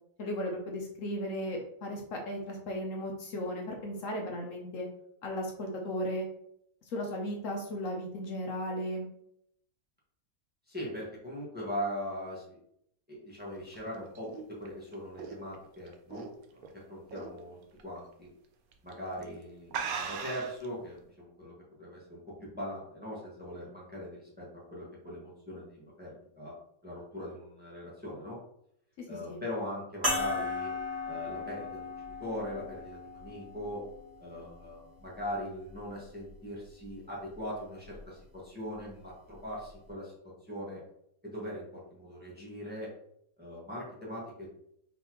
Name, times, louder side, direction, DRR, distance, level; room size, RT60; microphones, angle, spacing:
voice 1, 0.2-4.9 5.2-6.3 6.9-9.1 29.0-29.4, equal, 65° left, 1 dB, 1.1 m, -36 dB
voice 2, 10.7-12.6 13.1-16.3 16.5-18.3 18.8-26.5 26.8-28.4 29.1-30.7 31.1-31.9 32.2-33.9 34.2-40.1 40.4-40.8 41.2-42.9 43.4-44.5, equal, 5° right, -6 dB, 1.3 m, -40 dB
sound 1, 13.6-16.7 17.1-17.4 17.8-17.9 18.7-18.9 19.2-19.3 19.7-20.7, right 6 dB, 85° right, 1.1 m, -38 dB
sound 2, 30.0-34.8 35.6-35.7 37.9-38.0, left 2 dB, 45° right, 1.8 m, -36 dB
4.1 x 3.9 x 3.0 m, 0.73 s
omnidirectional pair, 1.5 m